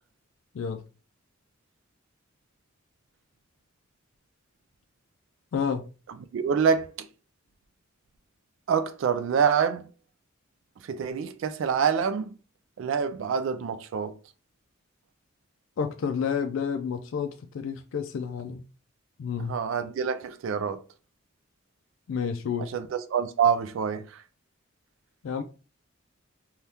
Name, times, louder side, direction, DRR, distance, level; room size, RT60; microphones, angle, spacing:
voice 1, 5.5-5.8 15.8-18.6 19.2-19.6 22.1-22.7 25.2-25.4, left 6 dB, 70° left, 0.3 m, -30 dB
voice 2, 6.3-7.1 8.7-9.9 10.8-12.3 12.8-14.1 19.4-20.8 22.6-24.2, right 6 dB, 70° right, 0.3 m, -26 dB
2.7 x 2.3 x 3.4 m
head